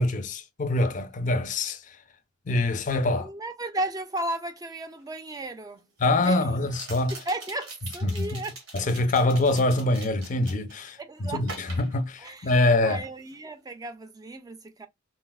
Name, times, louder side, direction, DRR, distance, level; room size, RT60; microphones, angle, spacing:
voice 1, 0.0-1.8 2.5-3.3 6.0-7.1 8.0-8.4 8.7-13.0, left 2 dB, 40° left, 0.5 m, -24 dB
voice 2, 3.1-5.9 6.2-6.4 7.1-8.6 11.0-11.4 12.2-14.9, right 1 dB, 20° right, 0.4 m, -34 dB
sound 1, 5.0-5.1 6.7-10.9 11.4-12.7 13.0-13.4, right 3 dB, 80° right, 1.3 m, -43 dB
3.9 x 2.3 x 2.3 m
head